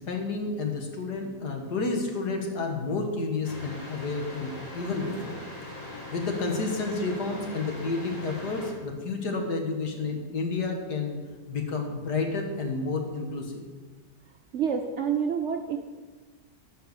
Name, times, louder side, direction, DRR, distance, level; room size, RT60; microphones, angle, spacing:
voice 1, 0.1-5.4 6.1-11.2 11.5-13.6, left 3 dB, 70° left, 2 dB, 2.1 m, -30 dB
sound 1, 3.4-8.7, left 2 dB, 45° left, 2.8 m, -41 dB
voice 2, 14.5-15.8, right 7 dB, 60° right, 4 dB, 0.8 m, -27 dB
13.5 x 5.7 x 6.7 m, 1.3 s
omnidirectional pair, 1.8 m